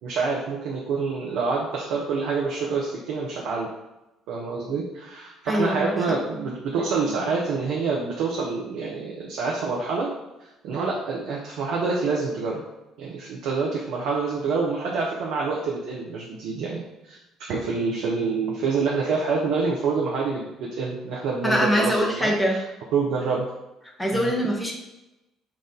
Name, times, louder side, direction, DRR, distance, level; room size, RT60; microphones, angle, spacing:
voice 1, 0.0-3.7 4.3-10.1 10.4-12.6 13.0-17.2 17.5-22.6 22.9-23.5 24.1-24.3, right 4 dB, 60° right, -3 dB, 0.7 m, -27 dB
voice 2, 5.5-6.2 21.4-22.6 24.0-24.7, equal, 10° left, -1 dB, 1.1 m, -23 dB
5.9 x 2.5 x 3.6 m, 0.96 s
figure-of-eight pair, 50°, 0 cm